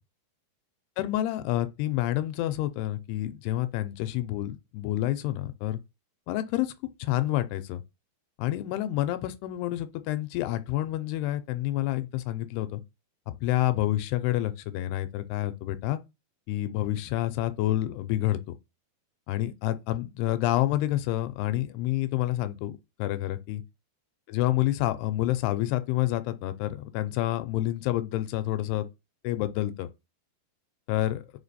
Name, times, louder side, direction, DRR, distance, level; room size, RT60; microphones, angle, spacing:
voice 1, 1.0-5.8 6.3-6.7 7.0-7.8 8.4-12.8 13.4-16.0 16.5-18.5 19.3-23.6 24.3-28.8 29.2-29.9 30.9-31.2, left 14 dB, 85° left, 2.6 m, -28 dB
5.1 x 5.1 x 4.1 m
omnidirectional pair, 4.6 m